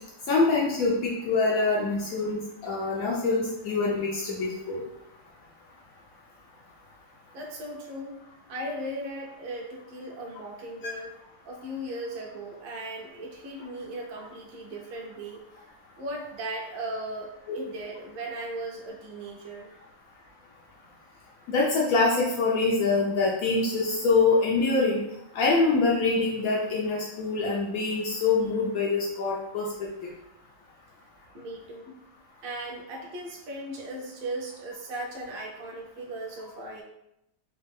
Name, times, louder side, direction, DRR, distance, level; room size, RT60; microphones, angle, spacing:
voice 1, 0.3-4.8 10.8-10.9 21.5-25.0 25.3-29.7, left 3 dB, 85° left, -4 dB, 0.7 m, -25 dB
voice 2, 7.3-8.1 8.5-11.1 11.4-19.7 31.3-32.0 32.4-36.8, right 1 dB, 70° right, -1 dB, 1.4 m, -37 dB
4.3 x 2.4 x 3.5 m, 0.83 s
omnidirectional pair, 2.3 m